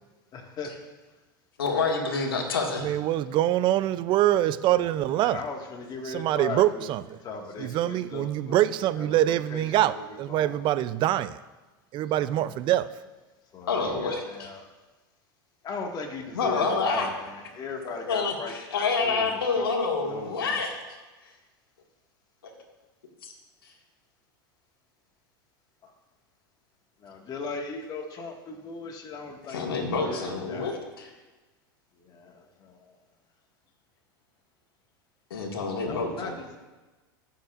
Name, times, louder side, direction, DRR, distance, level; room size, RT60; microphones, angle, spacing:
voice 1, 0.3-0.8 4.7-6.9 7.2-8.6 9.0-10.6 12.2-12.5 13.5-14.7 15.6-18.5 19.0-19.7 20.1-20.6 25.8-25.9 27.0-30.7 32.0-32.9 35.8-36.6, left 4 dB, 35° left, 1.8 m, -38 dB
voice 2, 1.6-2.9 13.7-14.5 16.3-17.1 17.8-20.8 23.2-23.3 23.6-23.7 29.5-31.1 35.3-36.3, left 4 dB, 90° left, 1.8 m, -28 dB
voice 3, 2.8-5.4 6.0-7.0 7.6-11.4 11.9-12.9, right 13 dB, 40° right, 0.5 m, -24 dB
20.0 x 7.1 x 2.5 m
hypercardioid pair, 105°, 12 cm